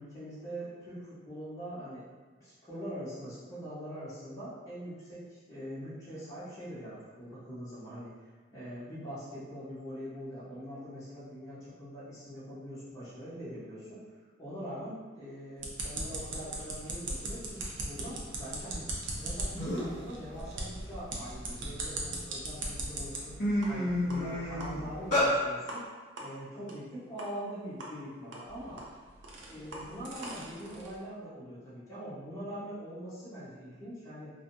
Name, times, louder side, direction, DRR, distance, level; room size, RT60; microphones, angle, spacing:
voice 1, 0.0-2.0 2.4-8.1 8.5-14.0 14.4-18.9 19.2-23.3 23.7-25.8 26.2-28.8 29.5-34.3, equal, 15° left, -13 dB, 0.9 m, -43 dB
sound 1, 15.6-23.2 23.6-23.7 24.1-24.2 24.6-24.7 25.1-25.2 25.7-25.8 26.2-26.3 26.7-26.8 27.2-27.3 27.8-27.9 28.3-31.0, right 2 dB, 65° right, 0.5 m, -39 dB
sound 2, 19.2-19.3 19.6-20.0 20.5-22.0 22.6-22.8 23.1-25.3, left 1 dB, 40° left, 1.4 m, -30 dB
3.4 x 2.2 x 2.6 m, 1.4 s
head